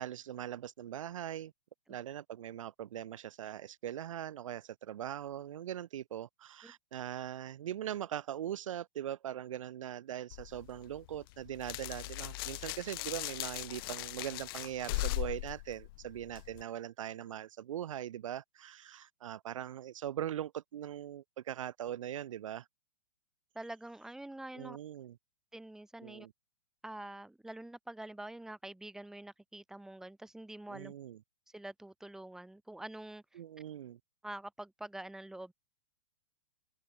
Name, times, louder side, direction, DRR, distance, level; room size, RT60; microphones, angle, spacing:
voice 1, 0.0-1.5 1.9-22.6 24.5-25.2 26.0-26.3 30.7-31.2 33.3-34.0, right 11 dB, 70° right, 1.3 m, -41 dB
sound 1, 10.3-16.6, left 21 dB, 45° left, 0.4 m, -39 dB
voice 2, 23.6-24.8 25.5-26.3 26.8-30.9 31.5-33.4 34.2-35.5, right 1 dB, 5° right, 1.6 m, -46 dB
open air
hypercardioid pair, 130°, 17 cm